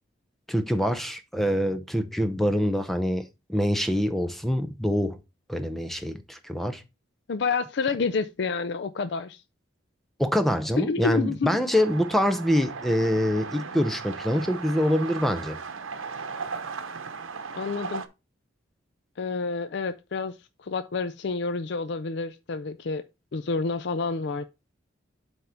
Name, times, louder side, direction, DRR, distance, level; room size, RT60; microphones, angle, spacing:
voice 1, 0.5-5.2 5.5-6.8 10.2-15.6, equal, ahead, 0.5 m, -25 dB
voice 2, 7.3-9.4 10.8-11.5 17.6-18.0 19.2-23.0 23.3-24.5, left 4 dB, 55° left, 0.4 m, -29 dB
sound 1, 11.7-18.1, right 5 dB, 90° right, 0.9 m, -37 dB
7.9 x 3.6 x 5.5 m
head